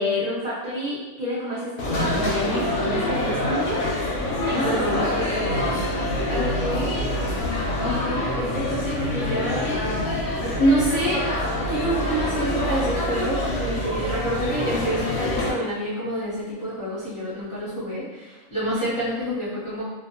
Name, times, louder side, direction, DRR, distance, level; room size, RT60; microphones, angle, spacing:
voice 1, 0.0-3.8 4.5-5.8, equal, 55° right, -9 dB, 0.4 m, -29 dB
sound 1, 1.8-15.5, left 1 dB, 80° left, 1.0 m, -26 dB
voice 2, 4.4-5.3 6.3-6.9 7.8-10.1 10.4-11.2 11.6-19.8, equal, 35° left, -11 dB, 0.5 m, -27 dB
2.4 x 2.4 x 2.7 m, 1.1 s
omnidirectional pair, 1.4 m